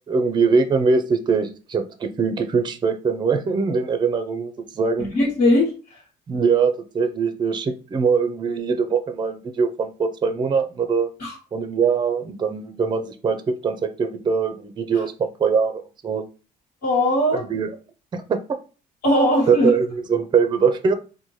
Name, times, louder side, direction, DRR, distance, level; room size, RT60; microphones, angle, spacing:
voice 1, 0.1-5.0 6.3-11.1 11.5-16.2 17.3-17.7 18.1-18.4 19.5-20.9, right 5 dB, 25° right, 8 dB, 0.5 m, -22 dB
voice 2, 5.0-6.0 11.2-11.4 16.8-17.4 19.0-19.7, left 1 dB, 60° left, -6 dB, 1.3 m, -19 dB
4.0 x 2.2 x 3.1 m, 0.35 s
cardioid pair, 110°, 17 cm